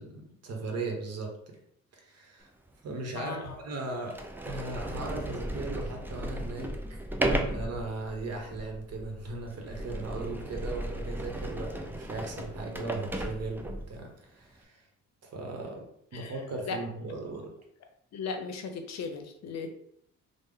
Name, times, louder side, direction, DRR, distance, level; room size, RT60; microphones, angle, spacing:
voice 1, 0.0-1.3 1.9-2.5 2.8-4.2 4.4-6.7 7.2-14.8 15.2-15.8 16.1-17.5, right 3 dB, 55° right, 1 dB, 1.0 m, -38 dB
Sliding door, 2.7-2.8 3.5-3.6 4.1-14.0, right 1 dB, 5° right, 0.3 m, -35 dB
voice 2, 3.1-3.6 16.1-16.3 16.7-16.8 18.1-19.7, left 5 dB, 60° left, 6 dB, 0.7 m, -36 dB
3.3 x 2.1 x 3.5 m, 0.70 s
cardioid pair, 90°, 30 cm